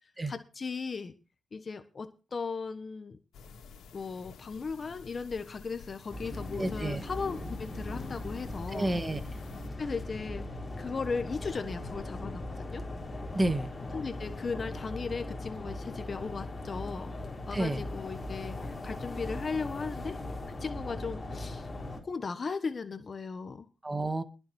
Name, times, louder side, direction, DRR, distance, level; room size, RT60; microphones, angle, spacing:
voice 1, 0.3-1.1 1.5-3.2 3.9-8.9 9.8-10.4 10.8-12.8 13.9-17.1 17.4-20.2 20.6-21.7 22.0-23.7, left 4 dB, 35° left, 9 dB, 1.2 m, -37 dB
sound 1, 3.3-9.7, left 6 dB, 90° left, 2.6 m, -51 dB
sound 2, 6.1-22.0, left 2 dB, 20° left, 3.8 m, -39 dB
voice 2, 6.6-7.0 8.7-9.2 13.3-13.7 17.5-17.8 23.8-24.2, right 1 dB, 15° right, 9 dB, 1.6 m, -30 dB
21.5 x 7.3 x 4.4 m, 0.32 s
cardioid pair, 130°, 0 cm